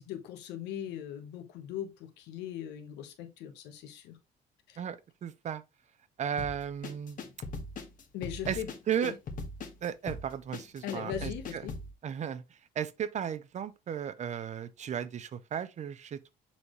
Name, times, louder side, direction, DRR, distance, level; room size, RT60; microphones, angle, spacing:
voice 1, 0.0-4.2 4.7-4.8 8.1-8.7 9.0-9.1 10.8-11.7, left 10 dB, 85° left, 1.3 m, -39 dB
voice 2, 5.2-5.6 6.2-7.2 8.5-8.6 8.9-9.1 9.8-11.7 12.0-12.4 12.8-16.3, right 8 dB, 45° right, 0.7 m, -35 dB
sound 1, 6.4-11.9, left 3 dB, 50° left, 1.3 m, -40 dB
7.1 x 4.3 x 3.2 m
cardioid pair, 110°, 17 cm